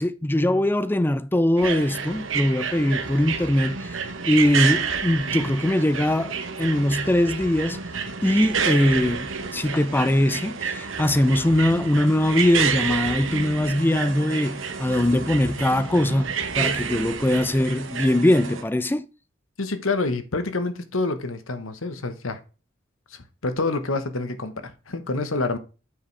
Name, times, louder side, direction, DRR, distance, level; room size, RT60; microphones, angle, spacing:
voice 1, 0.0-4.0 4.2-7.8 8.2-19.0, left 1 dB, 10° left, 0.4 m, -21 dB
sound 1, 1.6-18.6, right 6 dB, 75° right, 1.1 m, -29 dB
voice 2, 19.6-22.4 23.1-25.6, left 3 dB, 90° left, 1.2 m, -27 dB
8.7 x 4.9 x 3.3 m
head